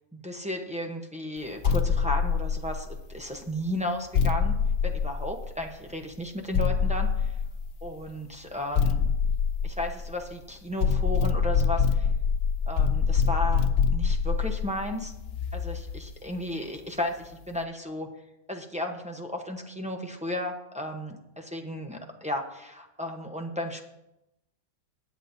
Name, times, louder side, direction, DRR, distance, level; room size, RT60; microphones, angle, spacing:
voice 1, 0.1-4.5 4.8-7.4 7.8-9.0 9.6-12.1 12.7-15.1 15.5-18.1 18.5-23.8, left 1 dB, 10° right, 1 dB, 0.5 m, -34 dB
sound 1, 1.6-3.1 4.1-5.8 6.5-7.9 8.7-10.3 10.8-16.1, left 6 dB, 80° left, 0.5 m, -25 dB
19.0 x 8.4 x 2.7 m, 0.89 s
omnidirectional pair, 1.8 m